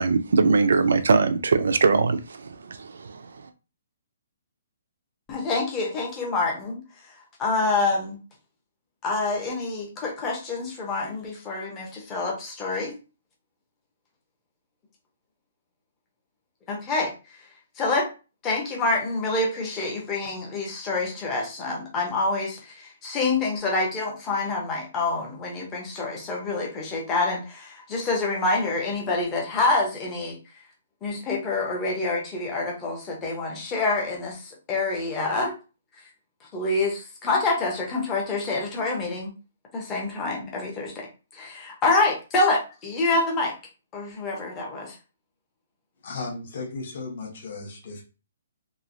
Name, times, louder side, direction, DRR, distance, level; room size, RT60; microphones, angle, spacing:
voice 1, 0.0-3.3, right 4 dB, 75° right, 9 dB, 0.4 m, -21 dB
voice 2, 5.3-6.8 7.4-8.2 9.0-12.9 16.7-17.1 17.8-18.1 18.4-30.4 31.0-35.5 36.5-39.3 39.7-41.1 41.3-43.5 43.9-45.0, left 3 dB, 10° left, -1 dB, 0.7 m, -27 dB
voice 3, 46.0-48.0, left 3 dB, 40° left, 1 dB, 0.9 m, -35 dB
3.0 x 2.7 x 2.6 m, 0.32 s
hypercardioid pair, 180°, 0 cm